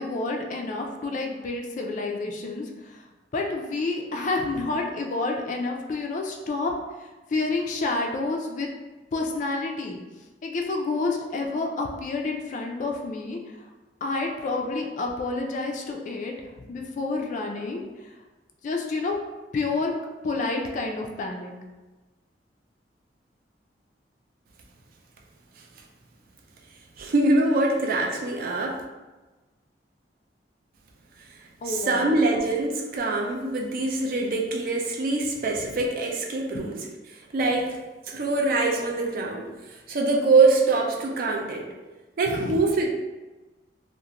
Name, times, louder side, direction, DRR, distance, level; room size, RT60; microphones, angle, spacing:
voice 1, 0.0-3.0 3.3-6.7 7.3-8.7 9.1-10.0 10.4-13.4 14.0-17.8 18.6-19.1 19.5-19.9 20.2-21.5 31.6-32.0 36.5-36.7 42.3-42.6, left 3 dB, 45° left, 2 dB, 0.3 m, -29 dB
voice 2, 27.0-28.8 31.6-36.8 37.1-37.8 38.1-39.5 39.9-41.7 42.2-42.9, right 3 dB, 55° right, 1 dB, 0.4 m, -24 dB
2.4 x 2.0 x 2.8 m, 1.2 s
head